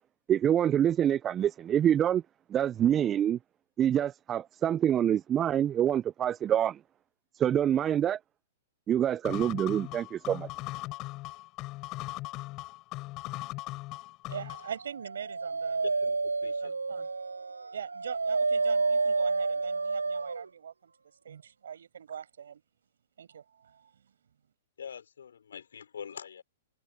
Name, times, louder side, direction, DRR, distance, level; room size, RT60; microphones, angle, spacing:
voice 1, 0.3-2.2 2.5-3.4 3.8-6.8 7.3-8.2 8.9-10.5, right 10 dB, 25° right, 0.7 m, -26 dB
sound 1, 9.2-14.8, left 20 dB, 35° left, 5.4 m, -39 dB
voice 2, 14.3-15.8 16.4-17.1 17.7-20.9 21.2-22.6 23.2-24.0, right 8 dB, 70° right, 6.2 m, -42 dB
Dog, 14.9-20.5, right 4 dB, 85° right, 0.4 m, -30 dB
voice 3, 15.8-17.1 24.8-26.4, left 7 dB, 75° left, 4.9 m, -44 dB
figure-of-eight pair, 110°, 0 cm